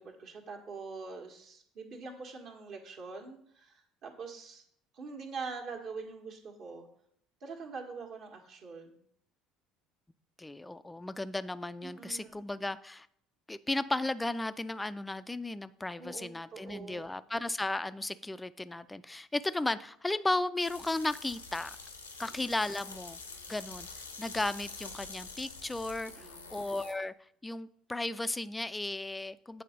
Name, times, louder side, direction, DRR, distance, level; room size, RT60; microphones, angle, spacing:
voice 1, 0.0-4.6 4.9-6.9 7.4-9.0 11.8-12.4 16.0-17.2 26.1-26.6, right 4 dB, 50° right, 1.5 m, -44 dB
voice 2, 10.4-13.1 13.5-21.8 22.2-23.2 23.5-27.1 27.4-29.6, left 2 dB, 10° left, 0.4 m, -35 dB
sound 1, 20.6-26.9, left 4 dB, 85° left, 0.8 m, -46 dB
8.2 x 4.2 x 5.1 m
figure-of-eight pair, 60°, 0 cm